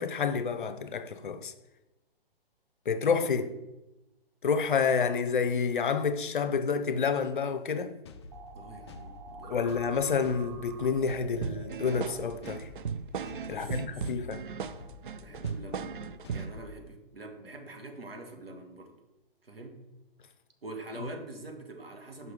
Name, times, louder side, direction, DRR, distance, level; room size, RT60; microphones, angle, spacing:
voice 1, 0.0-1.5 2.9-3.5 4.4-7.9 9.5-12.7 13.5-14.4 21.0-21.1, left 5 dB, 55° left, 0.7 m, -29 dB
sound 1, 8.1-16.8, left 3 dB, 30° left, 0.4 m, -48 dB
sound 2, 8.3-12.2, right 5 dB, 40° right, 1.1 m, -48 dB
voice 2, 8.5-9.9 13.4-14.1 15.2-15.9 16.3-19.0 19.4-19.8 20.6-22.3, right 2 dB, 75° right, 1.7 m, -45 dB
sound 3, 11.4-16.6, right 6 dB, 60° right, 0.5 m, -37 dB
5.8 x 5.7 x 4.8 m
figure-of-eight pair, 125°, 30 cm